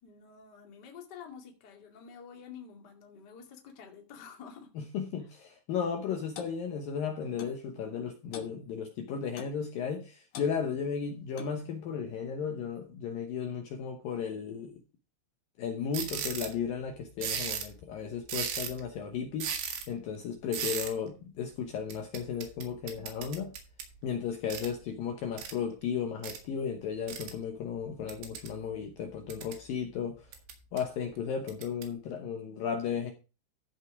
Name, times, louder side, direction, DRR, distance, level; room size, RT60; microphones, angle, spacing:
voice 1, 0.0-4.7, left 7 dB, 35° left, 2.0 m, -49 dB
voice 2, 4.8-14.7 15.6-19.5 19.9-23.5 24.0-30.3 30.7-33.1, left 7 dB, 70° left, 2.5 m, -35 dB
Clock, 6.4-6.6 7.4-7.6 8.3-8.6 9.4-9.6 10.3-10.5 11.4-11.6, left 8 dB, 90° left, 1.5 m, -44 dB
sound 1, 15.9-16.6 17.2-17.7 18.3-18.9 19.4-19.9 20.5-20.9 21.9-23.9 24.5-24.7 25.4-25.5 26.2-26.4 27.1-27.3 28.1-28.5 29.1-29.6 30.3-30.8 31.5-31.8, right 8 dB, 85° right, 4.1 m, -36 dB
14.5 x 5.6 x 4.8 m
omnidirectional pair, 5.0 m